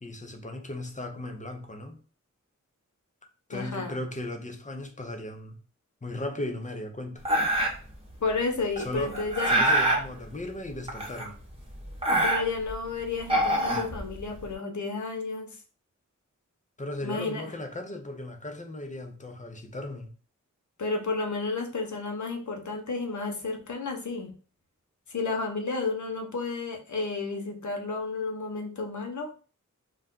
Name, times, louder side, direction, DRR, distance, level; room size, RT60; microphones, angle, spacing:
voice 1, 0.0-2.0 3.5-5.6 6.0-7.2 8.8-9.2 9.5-11.4 16.8-20.1, left 1 dB, 25° left, 0.6 m, -36 dB
voice 2, 3.5-4.0 8.2-9.5 12.2-15.6 17.0-17.5 20.8-24.3 25.1-29.3, left 3 dB, 70° left, 0.8 m, -32 dB
sound 1, 7.2-7.9 8.8-10.0 10.9-11.5 11.8-12.7 13.2-14.4, right 1 dB, 20° right, 1.0 m, -25 dB
2.4 x 2.2 x 3.7 m
wide cardioid pair, 50°, 31 cm